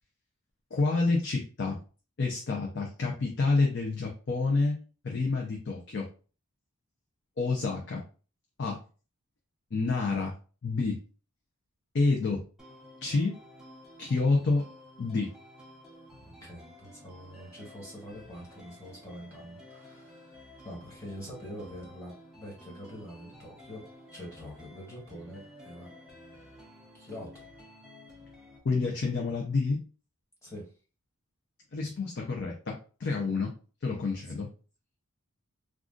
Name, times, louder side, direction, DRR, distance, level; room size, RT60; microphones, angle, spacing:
voice 1, 0.7-1.8 2.2-6.1 7.4-8.0 8.6-8.8 9.7-10.3 10.6-11.0 11.9-12.4 13.0-13.4 14.0-14.7 15.0-15.3 28.6-29.8 31.7-33.5 33.8-34.5, left 3 dB, 50° left, 0 dB, 0.5 m, -28 dB
sound 1, 12.6-28.6, left 1 dB, ahead, 0.6 m, -52 dB
voice 2, 16.2-23.8 24.1-25.9 26.9-27.5 30.4-30.7 34.1-34.2, equal, 15° left, -4 dB, 1.4 m, -45 dB
2.4 x 2.3 x 3.7 m, 0.36 s
head